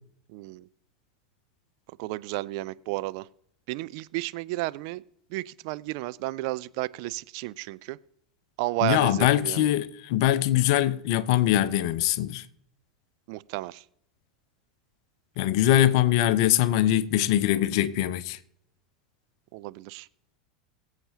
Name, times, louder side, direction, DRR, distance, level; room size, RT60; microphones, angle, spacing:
voice 1, 0.3-0.7 2.0-3.3 3.7-5.0 5.3-8.0 8.6-9.7 13.3-13.8 19.5-20.1, right 20 dB, 50° right, 0.4 m, -32 dB
voice 2, 8.8-12.4 15.4-18.4, left 13 dB, 50° left, 0.6 m, -22 dB
23.0 x 8.1 x 2.8 m
figure-of-eight pair, 80°, 3 cm